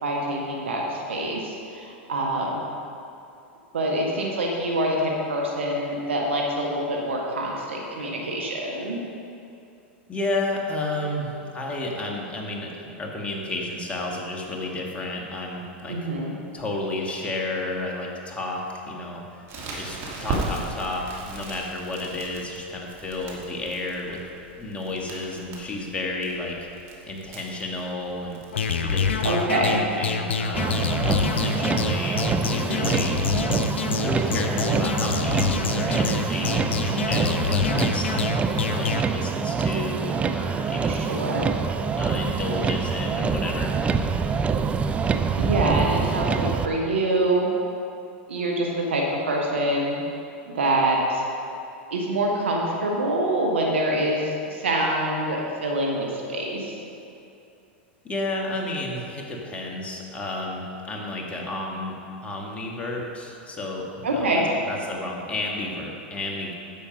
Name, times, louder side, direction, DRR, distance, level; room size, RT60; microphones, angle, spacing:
voice 1, 0.0-2.6 3.7-9.0 15.9-16.3 29.2-29.8 40.9-41.4 45.4-47.5 48.3-50.0 50.5-51.2 51.9-56.7 64.0-64.4, right 1 dB, 85° right, -1 dB, 1.5 m, -25 dB
voice 2, 10.1-16.0 16.5-19.2 19.8-24.2 24.6-26.6 27.1-28.4 28.7-33.2 34.0-38.4 38.7-41.0 42.0-43.8 58.0-62.0 62.2-66.5, left 2 dB, 20° left, -1 dB, 1.9 m, -32 dB
Crackle, 19.5-28.6, right 2 dB, 45° right, 2.5 m, -37 dB
sound 1, 28.5-39.0, left 5 dB, 85° left, 0.7 m, -27 dB
Motor vehicle (road), 30.5-46.7, right 5 dB, 20° right, 0.5 m, -25 dB
10.0 x 7.4 x 5.3 m, 2.7 s
hypercardioid pair, 105°, 6 cm